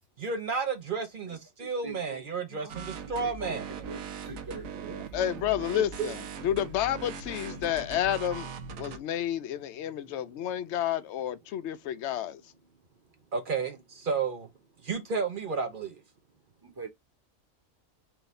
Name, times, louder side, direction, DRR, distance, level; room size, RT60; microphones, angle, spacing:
voice 1, 0.2-3.8 4.8-4.9 5.7-6.1 13.3-14.5 14.8-16.0, right 5 dB, 50° right, 0.7 m, -32 dB
sound 1, 2.7-9.0, right 6 dB, 85° right, 1.1 m, -40 dB
voice 2, 3.2-3.6 3.9-5.1 5.4-5.5 16.6-16.9, right 3 dB, 20° right, 0.9 m, -43 dB
voice 3, 5.1-8.5 8.8-12.4, left 11 dB, 65° left, 0.8 m, -30 dB
4.7 x 2.6 x 3.1 m
omnidirectional pair, 1.4 m